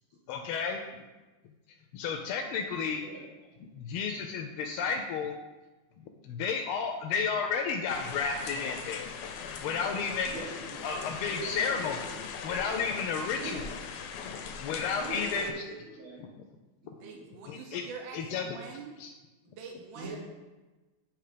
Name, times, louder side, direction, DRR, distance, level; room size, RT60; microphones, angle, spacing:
voice 1, 0.3-0.8 1.9-3.0 3.7-5.4 6.2-9.1 9.6-10.3 10.8-12.0 12.4-13.6 14.2-14.3 14.6-15.6 17.4-17.8 18.1-18.6 19.0-19.1, left 6 dB, 85° left, 3 dB, 1.5 m, -32 dB
sound 1, 7.9-15.5, left 6 dB, 70° left, 1.1 m, -40 dB
voice 2, 10.3-10.9 11.2-12.1 13.3-13.7 14.9-16.3 16.8-17.2 19.9-20.2, right 2 dB, 85° right, -5 dB, 2.6 m, -42 dB
voice 3, 17.0-18.9 19.4-20.2, right 5 dB, 70° right, 1 dB, 1.4 m, -45 dB
8.9 x 3.1 x 4.9 m, 1.2 s
omnidirectional pair, 2.3 m